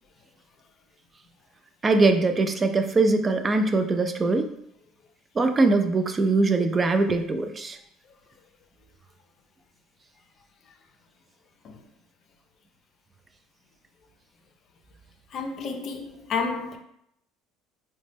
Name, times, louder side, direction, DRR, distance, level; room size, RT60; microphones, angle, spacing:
voice 1, 1.8-4.5 5.4-7.8, right 3 dB, 30° right, 0.3 m, -22 dB
voice 2, 15.3-16.8, left 4 dB, 50° left, 0.5 m, -31 dB
4.0 x 2.1 x 3.3 m
supercardioid pair, 95°, 0 cm